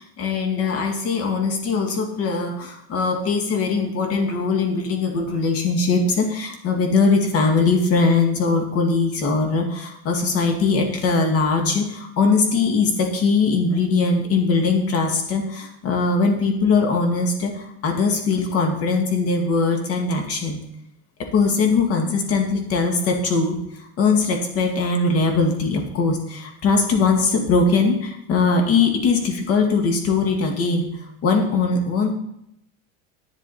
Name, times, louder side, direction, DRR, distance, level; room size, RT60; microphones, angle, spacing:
voice 1, 0.0-20.6 21.3-23.6 24.0-30.9 31.2-32.1, left 4 dB, 45° left, 4 dB, 2.2 m, -21 dB
11.0 x 9.1 x 4.3 m, 0.78 s
cardioid pair, 150°, 33 cm